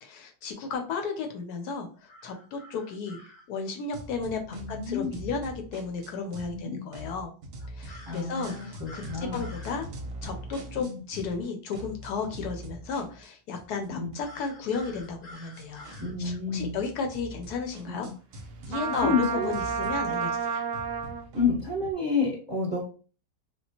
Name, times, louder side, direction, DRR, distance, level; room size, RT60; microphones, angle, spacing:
voice 1, 0.0-3.2 3.5-7.3 7.7-9.9 10.2-15.9 16.2-18.1 18.7-20.6, left 5 dB, 75° left, 4 dB, 1.1 m, -34 dB
sound 1, 2.1-3.4 7.9-9.8 14.2-16.1, left 1 dB, 35° left, 0.8 m, -49 dB
sound 2, 3.9-6.6 6.9-11.4 11.7-21.9, equal, 65° right, 0.9 m, -43 dB
voice 2, 4.5-5.2 6.5-6.8 8.1-9.4 10.7-10.9 13.9-14.1 16.0-16.7 17.9-18.0 19.0-19.5 21.3-22.8, left 4 dB, 20° right, -3 dB, 0.9 m, -29 dB
Trumpet, 18.7-21.2, right 6 dB, 80° right, 0.6 m, -30 dB
3.5 x 2.4 x 2.8 m, 0.38 s
omnidirectional pair, 1.8 m